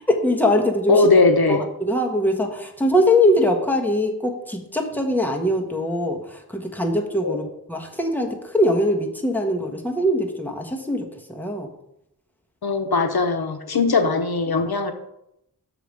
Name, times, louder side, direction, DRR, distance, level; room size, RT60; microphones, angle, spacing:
voice 1, 0.1-1.1 1.5-11.7 13.7-13.9, left 1 dB, 5° left, 2 dB, 1.4 m, -22 dB
voice 2, 0.9-1.6 7.2-7.4 12.6-14.9, left 3 dB, 80° left, 7 dB, 0.8 m, -19 dB
6.8 x 5.0 x 6.4 m, 0.81 s
wide cardioid pair, 45°, 36 cm